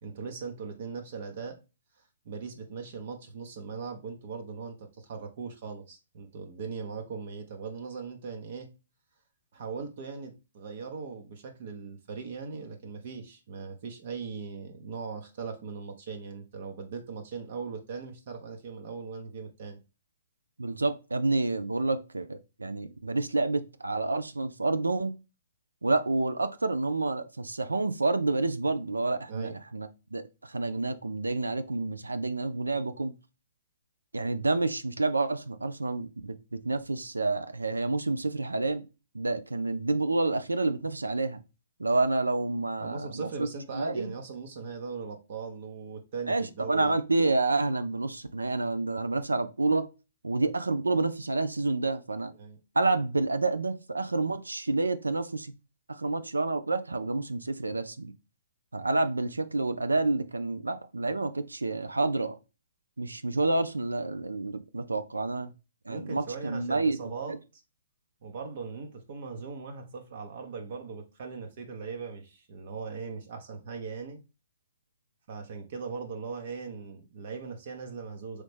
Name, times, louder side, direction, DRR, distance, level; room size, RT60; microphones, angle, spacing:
voice 1, 0.0-1.6 2.2-8.7 9.5-19.8 29.3-29.5 42.8-46.9 52.4-52.6 65.9-67.6 68.2-74.2 75.3-78.4, right 5 dB, 55° right, 0.9 m, -39 dB
voice 2, 20.6-25.1 25.8-33.1 34.1-36.4 36.6-38.8 39.1-41.4 41.8-43.5 43.7-44.1 46.3-49.9 50.2-52.3 52.8-55.5 55.9-58.1 58.7-62.4 63.0-65.5 65.9-67.4, right 2 dB, 90° right, 0.5 m, -29 dB
4.0 x 3.2 x 3.2 m
figure-of-eight pair, 125°, 0 cm